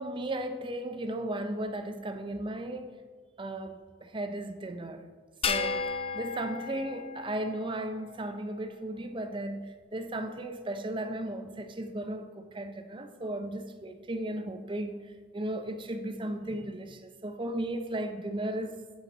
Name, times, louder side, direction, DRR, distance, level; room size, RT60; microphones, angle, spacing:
voice 1, 0.0-2.9 3.4-5.0 5.5-18.7, right 1 dB, 25° right, 0.6 m, -35 dB
sound 1, 5.4-8.0, left 5 dB, 30° left, 0.5 m, -34 dB
9.2 x 7.6 x 3.9 m
head